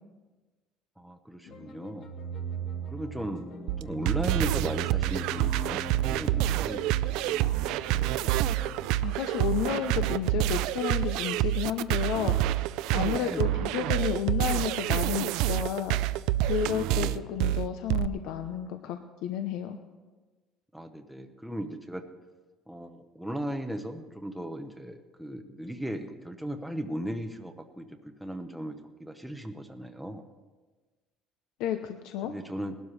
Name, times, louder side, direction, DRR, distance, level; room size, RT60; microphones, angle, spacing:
voice 1, 1.0-2.1 2.9-3.5 3.8-8.1 13.1-13.6 16.8-17.2 20.7-22.0 22.7-30.3 32.2-32.8, right 1 dB, ahead, 4 dB, 0.6 m, -37 dB
sound 1, 1.5-8.8, right 5 dB, 50° left, 1.5 m, -39 dB
sound 2, 3.7-18.1, right 15 dB, 80° right, 0.4 m, -27 dB
voice 2, 9.0-12.6 12.9-16.0 16.5-19.8 31.6-32.3, left 10 dB, 70° left, 7 dB, 0.7 m, -31 dB
19.5 x 12.0 x 3.2 m, 1.3 s
cardioid pair, 160°, 0 cm